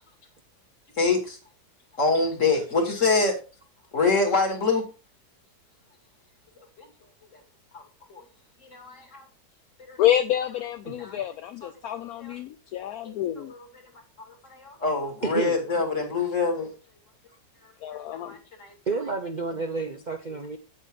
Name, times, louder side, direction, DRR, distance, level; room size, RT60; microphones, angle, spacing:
voice 1, 1.0-1.4 2.0-3.3 3.9-4.9 6.8-6.9 7.7-7.8 8.1-8.2 8.7-9.2 9.9-10.0 11.0-11.2 12.2-12.3 13.4-13.6 14.5-16.7 18.1-18.7, left 3 dB, 45° left, 2.5 m, -25 dB
voice 2, 10.0-13.5 17.8-18.4, left 12 dB, 70° left, 1.0 m, -27 dB
voice 3, 15.2-15.6 18.9-20.6, right 4 dB, 40° right, 0.6 m, -30 dB
8.6 x 8.4 x 3.6 m
omnidirectional pair, 1.8 m